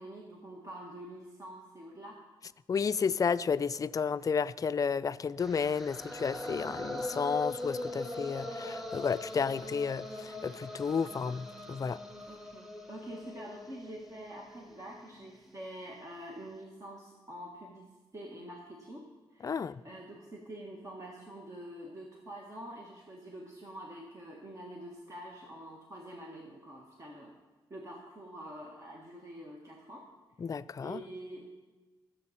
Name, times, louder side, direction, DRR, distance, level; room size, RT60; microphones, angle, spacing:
voice 1, 0.0-2.2 12.3-27.3 27.7-30.1 30.5-31.6, right 1 dB, 35° right, -1 dB, 1.6 m, -46 dB
voice 2, 2.7-12.0 19.4-19.8 30.4-31.0, left 6 dB, 40° left, 14 dB, 0.4 m, -32 dB
sound 1, 5.4-15.5, left 1 dB, 5° right, 1.4 m, -41 dB
19.5 x 7.6 x 4.3 m, 1.3 s
cardioid pair, 80°, 9 cm